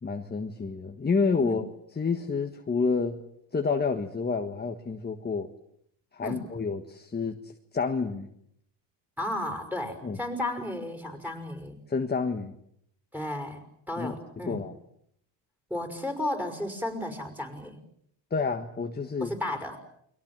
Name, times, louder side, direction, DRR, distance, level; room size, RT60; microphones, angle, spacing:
voice 1, 0.0-1.7 2.0-3.2 3.5-5.5 6.1-8.3 10.0-10.2 11.9-12.5 14.0-14.2 14.5-14.7 18.3-19.3, left 4 dB, 20° left, 5 dB, 1.5 m, -29 dB
voice 2, 9.2-11.9 13.1-13.6 13.9-14.6 15.7-17.8 19.2-19.8, left 1 dB, 5° right, 7 dB, 5.9 m, -33 dB
30.0 x 23.0 x 7.5 m, 0.72 s
cardioid pair, 115°, 49 cm